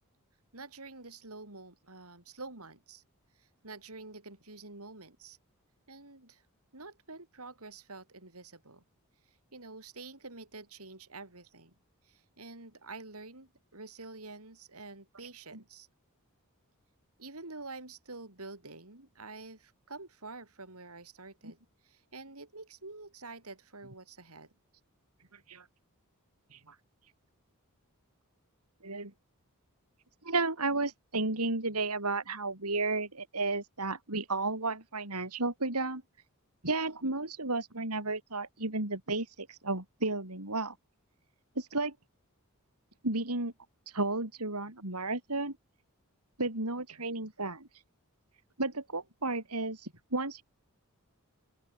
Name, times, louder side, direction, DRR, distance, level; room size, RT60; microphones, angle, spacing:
voice 1, 0.5-3.0 3.3-5.4 5.9-6.4 6.7-8.8 9.3-11.7 12.0-15.9 17.2-21.6 21.8-24.5, right 3 dB, 75° right, 5.0 m, -48 dB
voice 2, 25.3-25.7 26.5-26.8 28.8-29.1 30.2-36.0 36.6-40.8 41.6-42.0 43.0-43.5 43.9-45.6 46.4-47.7 48.6-50.4, right 3 dB, 90° right, 5.6 m, -33 dB
open air
head